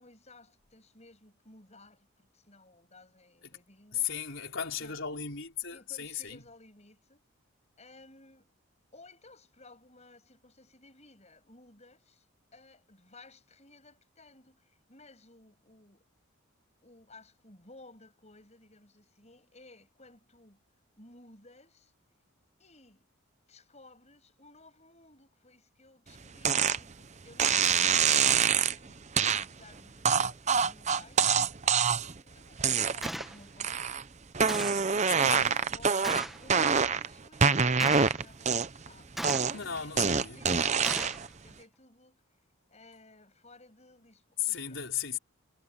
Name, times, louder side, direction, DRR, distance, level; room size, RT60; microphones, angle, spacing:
voice 1, 0.0-4.1 4.8-5.0 5.7-7.2 7.8-8.5 8.9-16.0 16.8-20.6 20.9-21.9 22.6-23.1 23.5-33.9 34.8-39.4 39.6-42.2 42.7-44.8, left 2 dB, 30° left, 7.1 m, -57 dB
voice 2, 3.9-6.4 35.1-35.6 39.5-40.4 44.4-45.2, left 9 dB, 60° left, 4.9 m, -35 dB
sound 1, 26.4-26.8 27.4-28.8 29.2-29.4 30.0-32.2 32.6-33.2 33.6-34.0 34.3-37.1 37.4-38.9 39.2-41.3, right 6 dB, 30° right, 0.7 m, -25 dB
Gunshot gunfire, 33.0-33.4 34.5-34.9 36.0-36.4 37.8-38.2 39.2-39.6 40.8-41.2, equal, ahead, 1.2 m, -37 dB
head